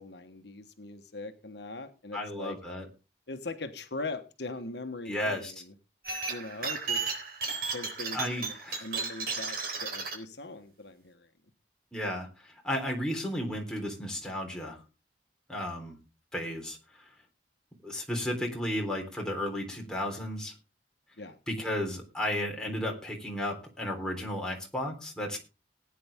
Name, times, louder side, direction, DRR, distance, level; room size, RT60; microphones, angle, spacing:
voice 1, 0.0-2.6 3.3-5.7 6.3-7.1 7.7-11.3 21.2-21.4, left 2 dB, 65° left, 7 dB, 1.3 m, -41 dB
voice 2, 2.1-2.9 5.1-5.5 8.1-8.9 11.9-14.8 15.5-16.0 16.3-16.8 17.8-20.5 21.5-25.4, left 1 dB, 5° left, 0 dB, 3.7 m, -33 dB
sound 1, 6.0-10.1, right 4 dB, 55° right, 4.0 m, -34 dB
18.5 x 9.5 x 3.6 m, 0.30 s
head